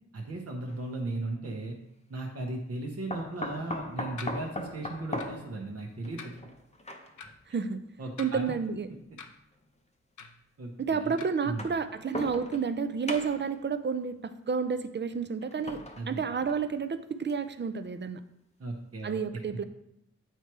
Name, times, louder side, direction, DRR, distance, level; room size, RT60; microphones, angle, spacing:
voice 1, 0.1-1.8 2.1-6.4 8.0-8.5 10.6-11.1 11.4-11.7 16.0-16.3 18.6-19.2, right 2 dB, 55° right, 0 dB, 0.8 m, -36 dB
sound 1, 0.7-0.8 3.1-7.4 8.3-8.4 9.6-9.7 11.4-12.8 13.1-13.6 15.4-16.8 17.3-17.4 17.8-17.9, left 1 dB, 20° left, 0.7 m, -39 dB
sound 2, 4.2-4.4 5.2-5.4 6.2-6.4 7.2-7.3 8.1-8.7 9.2-9.4 10.2-10.4 11.2-11.3, left 5 dB, 80° left, 0.6 m, -45 dB
voice 2, 8.2-8.9 10.8-15.8 16.1-18.2 19.0-19.6, right 5 dB, 40° right, 11 dB, 0.4 m, -30 dB
8.0 x 3.0 x 4.6 m, 0.78 s
wide cardioid pair, 80°, 29 cm